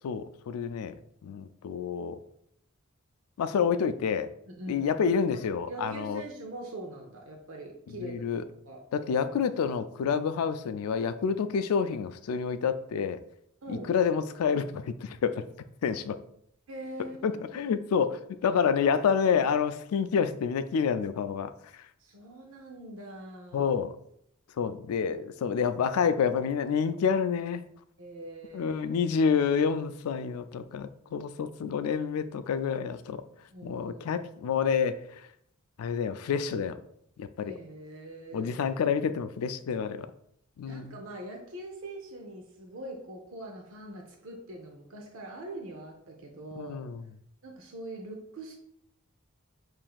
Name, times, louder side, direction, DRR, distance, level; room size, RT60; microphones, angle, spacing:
voice 1, 0.0-0.9 1.2-2.2 3.4-4.3 4.7-6.2 8.0-8.4 8.9-13.2 13.7-15.4 15.8-16.2 17.2-21.5 23.5-23.9 24.6-27.6 28.5-33.2 33.6-35.0 35.8-36.8 37.2-37.5 38.3-40.1 40.6-40.9 46.6-47.0, left 6 dB, 85° left, 11 dB, 0.3 m, -28 dB
voice 2, 4.5-5.0 5.3-8.4 8.7-8.8 13.6-13.9 16.7-17.7 22.0-23.7 28.0-28.9 33.5-34.0 37.5-38.7 40.7-46.8 47.4-48.6, right 1 dB, 65° right, 1 dB, 0.6 m, -43 dB
7.5 x 2.6 x 2.3 m, 0.72 s
head